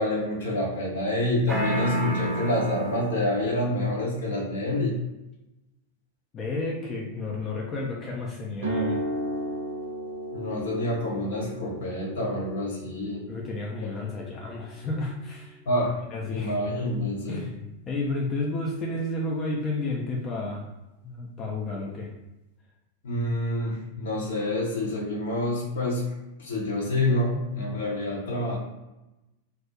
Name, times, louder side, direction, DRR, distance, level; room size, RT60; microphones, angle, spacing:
voice 1, 0.0-4.9 10.3-13.2 13.8-13.9 15.7-15.9 16.3-17.4 23.0-26.1 26.4-28.6, left 1 dB, 60° left, -2 dB, 0.7 m, -27 dB
sound 1, 1.5-3.4, equal, 10° right, 0.7 m, -28 dB
voice 2, 6.3-9.0 13.3-15.6 16.1-16.6 17.3-20.7 21.0-22.1, left 2 dB, 25° left, -2 dB, 0.4 m, -31 dB
sound 2, 8.6-16.6, right 1 dB, 65° right, 0.5 m, -36 dB
2.3 x 2.0 x 2.8 m, 0.97 s
figure-of-eight pair, 90°, 0 cm